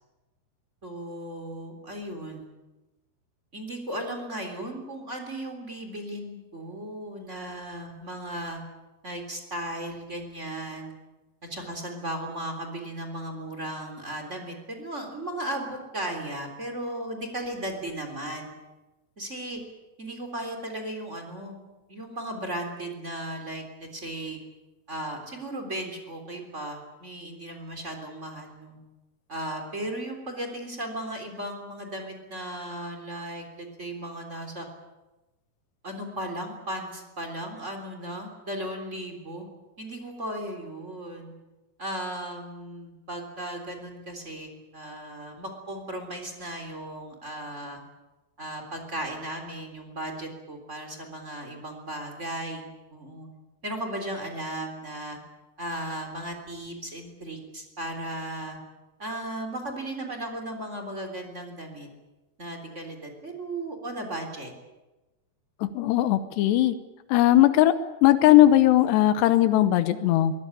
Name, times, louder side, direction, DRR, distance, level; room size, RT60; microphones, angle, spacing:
voice 1, 0.8-2.5 3.5-8.6 9.0-10.9 11.4-18.5 19.2-19.6 20.0-21.6 21.9-24.4 24.9-28.8 29.3-34.7 35.8-39.5 39.8-41.3 41.8-47.8 48.4-53.3 53.6-55.2 55.6-58.6 59.0-61.9 62.4-64.5, right 1 dB, 20° right, 3 dB, 3.4 m, -36 dB
voice 2, 65.6-66.8 67.1-67.8 68.0-70.3, left 13 dB, 90° left, 12 dB, 3.2 m, -19 dB
22.5 x 18.5 x 9.9 m, 1.1 s
omnidirectional pair, 4.7 m